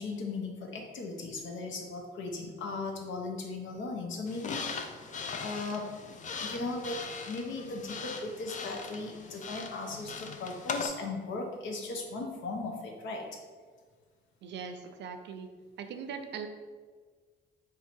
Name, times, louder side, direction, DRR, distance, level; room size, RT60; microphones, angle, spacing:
voice 1, 0.0-4.9 5.4-7.0 7.2-13.2, left 3 dB, 75° left, 2 dB, 0.9 m, -37 dB
sound 1, 4.3-10.9, left 5 dB, 40° left, 0.4 m, -40 dB
voice 2, 14.4-15.5 15.8-16.5, right 6 dB, 65° right, 7 dB, 0.5 m, -40 dB
3.8 x 2.8 x 4.5 m, 1.5 s
cardioid pair, 90°, 20 cm